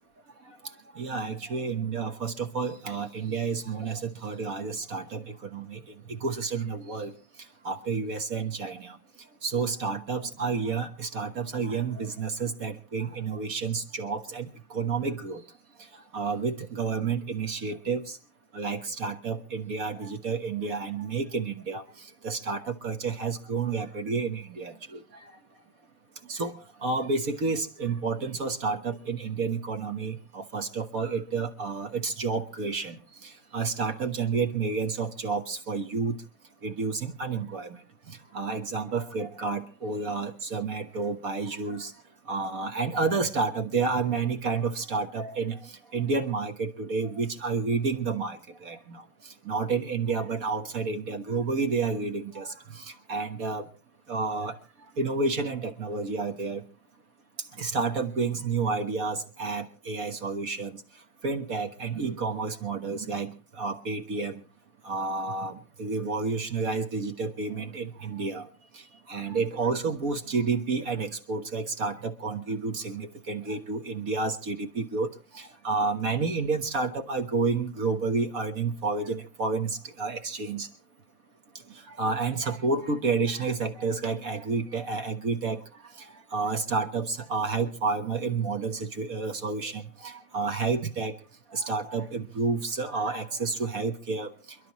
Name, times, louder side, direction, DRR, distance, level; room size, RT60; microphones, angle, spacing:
voice 1, 0.5-7.1 7.6-9.0 9.4-15.4 16.1-18.2 18.5-25.2 26.3-26.5 26.8-36.2 36.6-37.8 38.1-41.9 42.3-53.7 54.1-54.6 55.0-56.6 57.6-60.8 61.2-64.4 64.8-68.5 68.7-80.7 81.7-85.6 86.0-91.1 91.5-94.3, right 4 dB, 45° right, 6 dB, 1.5 m, -30 dB
28.0 x 12.0 x 3.1 m, 0.33 s
omnidirectional pair, 2.3 m